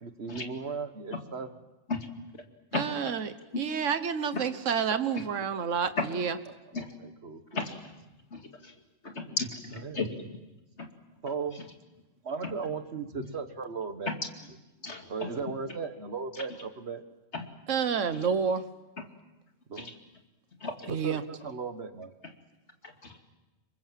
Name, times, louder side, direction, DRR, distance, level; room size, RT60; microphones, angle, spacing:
voice 1, 0.0-1.5 7.0-7.6 9.3-9.4 9.8-10.0 11.2-11.6 12.2-14.1 15.1-17.0 19.7-19.9 20.9-22.1, right 5 dB, 55° right, 9 dB, 1.7 m, -36 dB
voice 2, 2.7-6.4 17.7-18.6 20.9-21.2, right 6 dB, 75° right, 11 dB, 1.5 m, -29 dB
voice 3, 7.5-7.9 8.3-8.7 9.0-10.3 10.8-10.9 12.4-12.5 13.2-13.3 14.1-14.2 14.8-15.4 16.3-16.4 17.3-17.5 18.2-18.3 19.7-19.9 20.6-20.9 22.2-22.3 22.8-23.2, left 3 dB, 60° left, 4 dB, 2.8 m, -34 dB
27.0 x 23.5 x 7.5 m, 1.0 s
omnidirectional pair, 1.3 m